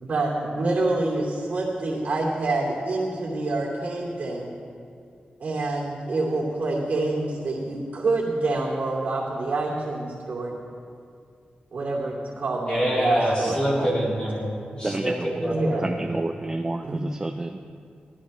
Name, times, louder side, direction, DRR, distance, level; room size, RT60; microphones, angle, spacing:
voice 1, 0.0-4.5 5.4-10.5 11.7-13.6 15.5-15.9 16.8-17.0, right 2 dB, 60° right, -5 dB, 2.7 m, -27 dB
voice 2, 12.7-14.5 14.8-15.1 15.4-15.8, equal, 35° left, -6 dB, 3.7 m, -24 dB
voice 3, 13.5-13.9 14.8-15.5 15.8-17.6, right 2 dB, 20° right, 5 dB, 0.4 m, -30 dB
18.5 x 13.5 x 3.2 m, 2.3 s
wide cardioid pair, 160°, 3 cm